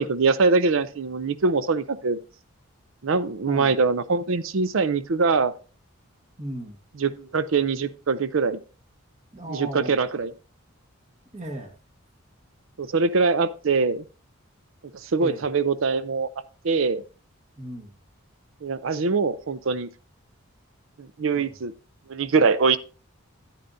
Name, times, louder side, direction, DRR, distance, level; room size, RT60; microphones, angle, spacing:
voice 1, 0.0-2.2 3.0-5.5 7.0-8.6 9.5-10.3 12.8-14.0 15.0-16.3 16.6-17.0 18.6-19.9 21.0-21.7 22.1-22.8, right 4 dB, 65° right, 14 dB, 0.5 m, -23 dB
voice 2, 3.5-3.8 6.4-6.8 9.3-9.9 11.3-11.7 15.2-15.5 17.6-18.0 21.3-21.6, right 1 dB, 30° right, 4 dB, 1.4 m, -36 dB
10.5 x 9.2 x 2.6 m, 0.35 s
head